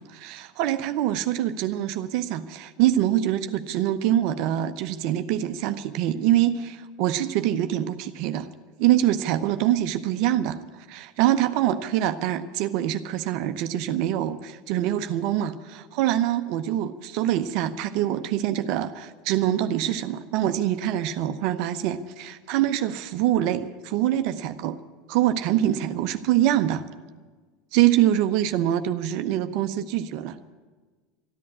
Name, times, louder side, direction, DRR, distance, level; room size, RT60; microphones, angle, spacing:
voice 1, 0.0-8.5 8.8-24.8 25.1-26.8 27.7-30.5, right 12 dB, 60° right, 9 dB, 0.8 m, -24 dB
13.5 x 11.0 x 9.8 m, 1.4 s
hypercardioid pair, 85°, 0 cm